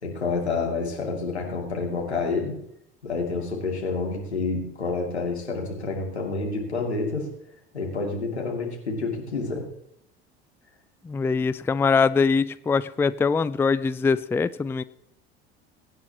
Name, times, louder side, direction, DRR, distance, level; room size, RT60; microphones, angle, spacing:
voice 1, 0.0-2.5 3.0-7.3 7.7-9.6, left 3 dB, 90° left, -1 dB, 2.7 m, -28 dB
voice 2, 11.0-14.8, left 5 dB, 5° left, 17 dB, 0.4 m, -23 dB
22.5 x 9.5 x 3.0 m, 0.76 s
figure-of-eight pair, 65°, 32 cm